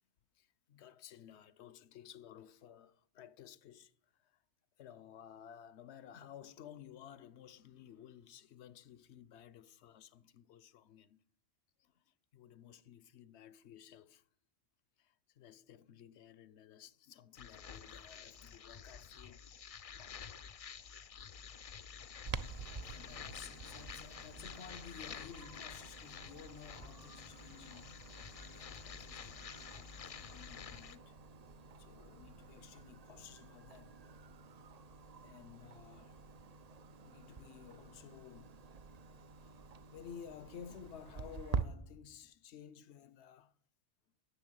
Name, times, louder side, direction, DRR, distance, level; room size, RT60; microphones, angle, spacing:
voice 1, 0.4-3.9 4.2-4.4 4.8-11.2 11.8-11.9 12.3-14.2 15.0-19.4 19.9-20.2 22.8-28.0 28.4-31.2 31.8-34.0 35.2-36.2 37.0-38.6 39.4-39.5 39.9-43.5, left 9 dB, 80° left, 0.9 m, -55 dB
sound 1, 17.3-31.0, left 7 dB, 50° left, 0.4 m, -50 dB
Clock, 22.3-41.6, right 5 dB, 45° right, 0.5 m, -48 dB
9.8 x 7.0 x 8.9 m
omnidirectional pair, 1.1 m